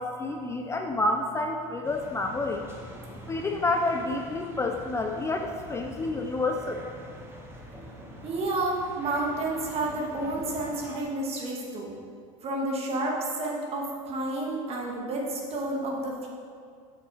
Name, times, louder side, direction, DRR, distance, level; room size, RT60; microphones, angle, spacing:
voice 1, 0.0-2.7 3.3-6.8, left 2 dB, 15° left, 3 dB, 0.5 m, -29 dB
sound 1, 1.8-11.0, right 1 dB, 15° right, 1.3 m, -45 dB
voice 2, 8.2-11.9 12.4-16.3, right 2 dB, 35° right, -1 dB, 1.8 m, -30 dB
7.6 x 6.5 x 4.4 m, 2.1 s
supercardioid pair, 110°, 17 cm